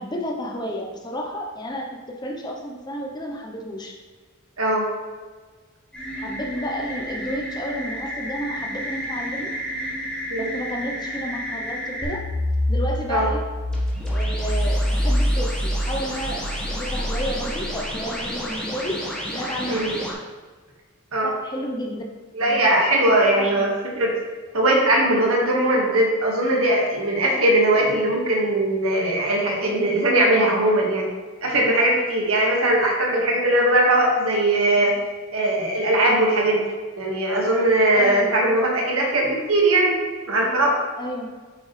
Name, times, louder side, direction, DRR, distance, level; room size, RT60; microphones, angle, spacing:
voice 1, 0.0-3.9 6.2-9.5 10.4-12.2 12.7-13.4 14.1-19.0 19.3-20.2 21.2-22.0 22.4-22.6 23.4-23.6 37.9-38.3 41.0-41.3, equal, 20° left, 1 dB, 0.8 m, -31 dB
sound 1, 5.9-12.1 13.7-20.1, equal, 5° left, 1.3 m, -32 dB
sound 2, 12.0-18.3, equal, 35° right, 1.2 m, -25 dB
voice 2, 22.3-23.7 24.0-24.1 24.5-31.1 31.4-34.9 35.3-36.6 37.0-39.9 40.3-40.8, right 1 dB, 85° right, -2 dB, 1.7 m, -20 dB
8.3 x 5.1 x 3.3 m, 1.4 s
head